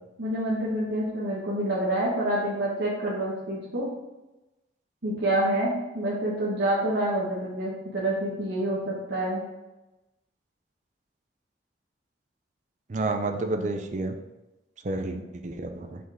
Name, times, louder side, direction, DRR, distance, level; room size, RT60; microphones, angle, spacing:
voice 1, 0.2-3.8 5.0-9.4 15.1-15.2, right 1 dB, 75° right, -7 dB, 1.4 m, -27 dB
voice 2, 12.9-14.2 14.8-15.2 15.4-16.0, right 2 dB, 40° right, 6 dB, 0.5 m, -29 dB
6.0 x 5.1 x 3.5 m, 1.0 s
head